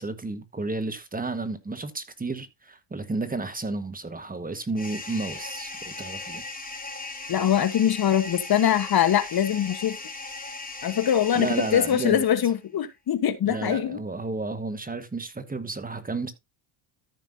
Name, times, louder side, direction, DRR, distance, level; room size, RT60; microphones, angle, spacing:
voice 1, 0.0-6.4 11.3-12.2 13.4-16.3, right 3 dB, 15° right, 1.5 m, -32 dB
sound 1, 4.8-12.5, left 3 dB, 15° left, 3.9 m, -38 dB
voice 2, 7.3-10.0 10.8-14.0, left 10 dB, 45° left, 1.3 m, -23 dB
14.0 x 6.0 x 2.7 m
cardioid pair, 95°, 50 cm